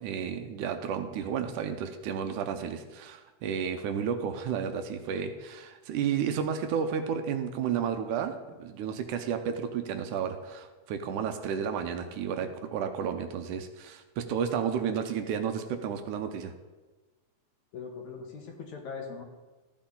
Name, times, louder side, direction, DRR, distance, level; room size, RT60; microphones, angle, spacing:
voice 1, 0.0-16.5, right 7 dB, 80° right, 7 dB, 2.2 m, -32 dB
voice 2, 17.7-19.2, left 5 dB, 70° left, 2 dB, 2.5 m, -40 dB
13.5 x 8.5 x 3.9 m, 1.2 s
omnidirectional pair, 3.7 m